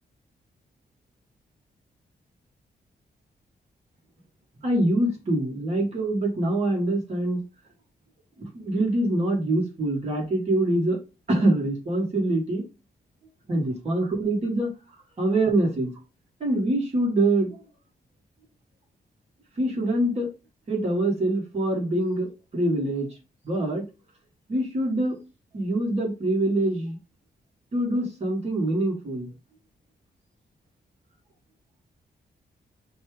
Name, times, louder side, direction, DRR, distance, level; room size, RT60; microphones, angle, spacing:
voice 1, 4.6-7.4 8.4-11.0 11.3-12.6 13.5-14.7 15.2-15.9 16.4-17.6 19.6-20.3 20.7-23.1 23.4-23.9 24.5-25.2 25.5-27.0 27.7-29.3, right 1 dB, 40° right, -2 dB, 1.5 m, -24 dB
5.3 x 2.3 x 3.2 m, 0.29 s
wide cardioid pair, 170°, 17 cm